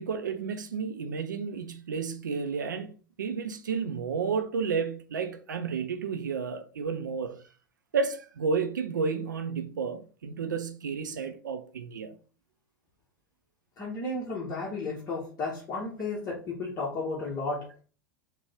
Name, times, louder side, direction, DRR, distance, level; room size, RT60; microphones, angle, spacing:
voice 1, 0.0-7.4 7.9-12.2, right 5 dB, 70° right, 0.4 m, -32 dB
voice 2, 13.8-17.7, left 3 dB, 30° left, 1.0 m, -33 dB
3.7 x 2.2 x 3.4 m
figure-of-eight pair, 85°, 11 cm